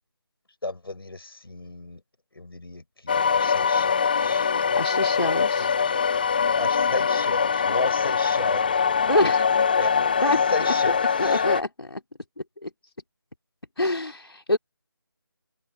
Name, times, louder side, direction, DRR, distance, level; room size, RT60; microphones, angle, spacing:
voice 1, 0.6-2.0 2.3-4.5 6.6-8.8 9.8-9.9 10.5-11.4, left 2 dB, 70° left, 6.7 m, -33 dB
sound 1, 3.1-11.6, left 6 dB, 20° left, 0.6 m, -23 dB
voice 2, 4.8-5.7 9.1-9.5 10.2-12.0 12.4-12.7 13.8-14.6, left 2 dB, 85° left, 3.0 m, -26 dB
figure-of-eight pair, 165°, 13 cm